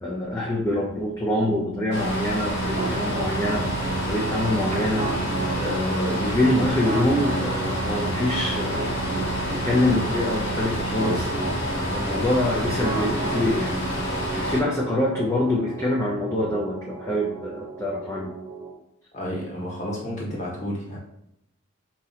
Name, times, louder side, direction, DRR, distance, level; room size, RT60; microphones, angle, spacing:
voice 1, 0.0-3.7 4.1-5.0 5.5-8.8 9.5-11.3 11.9-18.3, left 1 dB, 15° left, -4 dB, 0.6 m, -25 dB
Organ, 1.1-11.7, right 11 dB, 90° right, 0.7 m, -37 dB
sound 1, 1.9-14.6, equal, 55° left, 1.3 m, -29 dB
sound 2, 2.7-18.7, right 2 dB, 30° right, 0.6 m, -33 dB
voice 2, 19.1-21.0, equal, 35° left, -3 dB, 1.3 m, -31 dB
4.3 x 2.9 x 4.0 m, 0.79 s
head